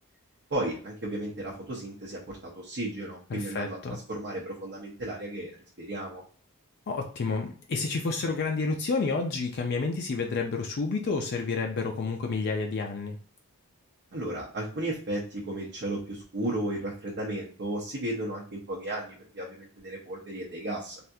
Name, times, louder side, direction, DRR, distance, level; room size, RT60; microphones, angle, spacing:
voice 1, 0.5-5.5 5.8-6.2 14.1-21.0, right 1 dB, 50° right, -4 dB, 0.7 m, -34 dB
voice 2, 3.3-4.0 6.9-13.2, left 4 dB, 50° left, 3 dB, 0.4 m, -30 dB
3.4 x 2.3 x 2.7 m, 0.43 s
head